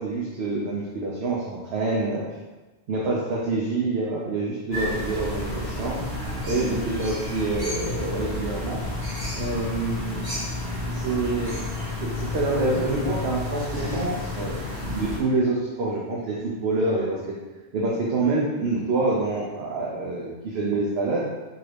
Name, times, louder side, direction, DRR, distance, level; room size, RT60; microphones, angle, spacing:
voice 1, 0.0-2.2 2.9-6.0 6.4-8.8 9.4-10.3 10.9-11.6 12.0-17.4 17.7-21.3, right 2 dB, 70° right, -4 dB, 0.9 m, -26 dB
sound 1, 4.7-15.2, left 2 dB, 20° right, 1.1 m, -31 dB
3.9 x 2.8 x 3.2 m, 1.2 s
omnidirectional pair, 1.1 m